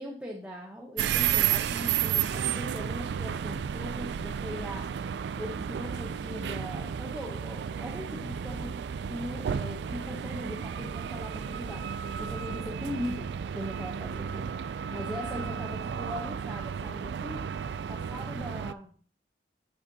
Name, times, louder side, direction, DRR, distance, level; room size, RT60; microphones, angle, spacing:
voice 1, 0.0-4.9 5.3-17.6 17.9-18.9, left 1 dB, 5° right, -2 dB, 0.8 m, -40 dB
sound 1, 1.0-18.7, right 8 dB, 75° right, 0.3 m, -32 dB
8.0 x 7.1 x 2.8 m, 0.44 s
head